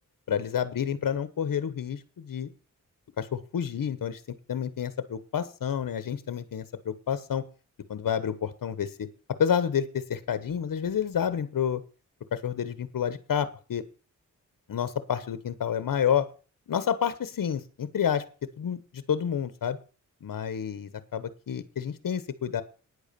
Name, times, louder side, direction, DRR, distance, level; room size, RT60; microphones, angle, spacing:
voice 1, 0.3-2.5 3.2-7.4 7.9-9.1 9.4-11.8 12.3-13.8 14.7-16.3 16.7-18.2 18.6-19.8 20.2-22.6, left 8 dB, 80° left, 13 dB, 1.1 m, -29 dB
9.9 x 8.2 x 6.8 m, 0.36 s
cardioid pair, 60°, 33 cm